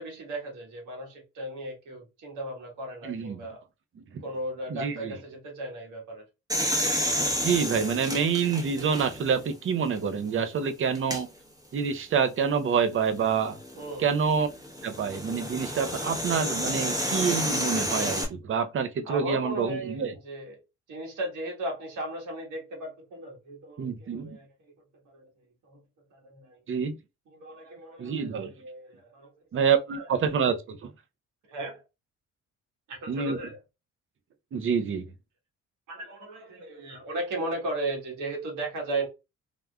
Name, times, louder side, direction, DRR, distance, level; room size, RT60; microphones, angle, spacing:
voice 1, 0.0-3.6 4.2-6.2 13.8-14.1 19.0-20.6 20.9-24.7 25.0-25.2 25.6-25.8 26.1-26.6 27.3-29.5 30.0-30.1 31.4-31.8 32.9-33.6 35.9-39.1, right 1 dB, 80° right, 1.4 m, -36 dB
voice 2, 3.0-3.4 4.1-4.2 4.7-5.1 7.1-11.3 11.7-13.6 14.0-14.5 14.8-20.1 23.8-24.4 26.7-27.0 28.0-28.5 29.5-30.9 33.1-33.4 34.5-35.0, right 6 dB, 45° right, 0.6 m, -27 dB
sound 1, 6.5-9.4 10.0-10.1 10.9-11.2 13.4-18.2, equal, 10° right, 0.9 m, -30 dB
3.5 x 2.4 x 2.2 m
cardioid pair, 90°, 30 cm